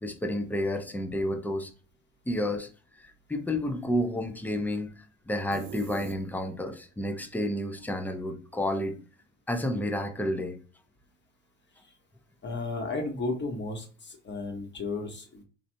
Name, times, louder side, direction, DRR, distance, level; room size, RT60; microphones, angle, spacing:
voice 1, 0.0-1.7 2.3-2.7 3.0-5.0 5.3-9.0 9.5-10.6, left 1 dB, 5° left, 0.6 m, -30 dB
sound 1, 5.5-6.8, right 10 dB, 75° right, 0.5 m, -42 dB
voice 2, 12.4-15.4, left 3 dB, 30° left, 1.2 m, -34 dB
3.2 x 2.5 x 2.7 m
hypercardioid pair, 65°, 35 cm